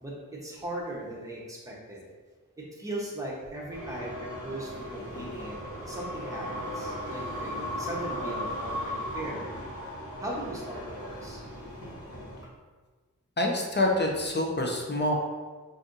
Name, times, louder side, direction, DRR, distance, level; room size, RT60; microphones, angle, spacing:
voice 1, 0.0-2.1 2.6-5.6 5.9-9.5 10.2-11.5, right 1 dB, 10° right, -5 dB, 0.8 m, -38 dB
sound 1, 3.7-12.4, left 1 dB, 80° left, 1.2 m, -37 dB
voice 2, 13.4-15.1, left 1 dB, 35° left, 0 dB, 0.5 m, -26 dB
2.6 x 2.6 x 3.7 m, 1.4 s
wide cardioid pair, 45°, 33 cm